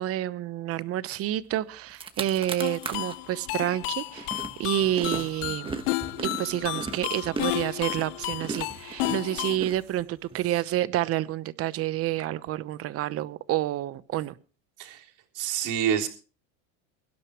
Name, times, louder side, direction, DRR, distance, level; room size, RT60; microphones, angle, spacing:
voice 1, 0.0-5.7 6.2-14.4, right 13 dB, 40° right, 15 dB, 0.9 m, -29 dB
sound 1, 1.5-1.6 1.9-3.2 3.6-10.4, right 4 dB, 15° right, 1.3 m, -37 dB
sound 2, 2.6-9.6, left 21 dB, 80° left, 0.6 m, -32 dB
voice 2, 15.3-16.1, right 9 dB, 55° right, 0 dB, 3.6 m, -27 dB
23.0 x 12.0 x 3.1 m, 0.35 s
supercardioid pair, 135°, 36 cm